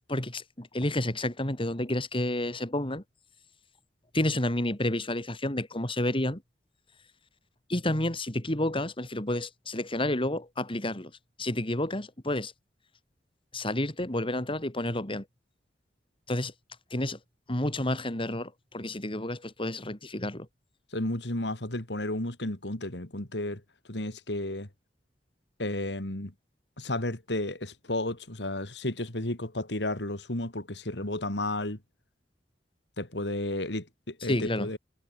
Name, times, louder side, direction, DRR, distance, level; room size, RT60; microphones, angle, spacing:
voice 1, 0.1-3.0 4.1-6.4 7.7-11.1 11.4-12.5 13.5-15.3 16.3-16.5 16.9-17.2 17.5-20.5 34.2-34.7, left 1 dB, 30° left, 3.7 m, -30 dB
voice 2, 20.9-23.6 23.9-24.7 25.6-26.3 26.8-31.8 33.0-34.8, left 1 dB, 75° left, 3.5 m, -32 dB
head